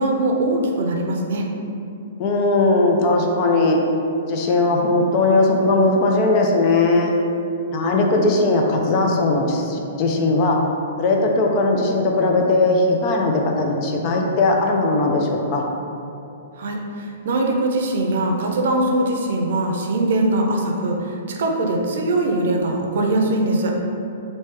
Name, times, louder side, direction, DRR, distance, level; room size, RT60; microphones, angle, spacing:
voice 1, 0.0-1.5 16.6-23.7, right 2 dB, 65° right, 1 dB, 0.5 m, -21 dB
voice 2, 2.2-3.8 4.3-7.1 7.7-10.6 11.0-15.7, left 2 dB, 35° left, 1 dB, 0.4 m, -18 dB
3.0 x 2.7 x 3.3 m, 2.7 s
hypercardioid pair, 150°, 0 cm